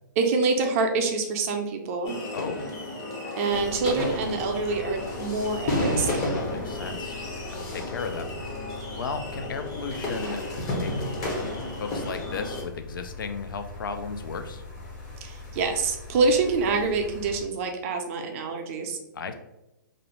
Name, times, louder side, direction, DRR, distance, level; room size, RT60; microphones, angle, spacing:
voice 1, 0.2-2.2 3.4-6.3 15.2-19.0, right 4 dB, 40° right, 4 dB, 0.5 m, -26 dB
sound 1, 2.0-12.6, left 2 dB, 25° left, 0.6 m, -32 dB
voice 2, 2.3-2.7 6.2-7.2 7.5-8.3 8.9-11.2 11.8-14.6 19.1-19.3, left 4 dB, 80° left, 7 dB, 0.4 m, -35 dB
sound 2, 3.5-17.4, left 3 dB, 55° left, 1.0 m, -42 dB
2.5 x 2.0 x 2.9 m, 0.90 s
hypercardioid pair, 135°, 11 cm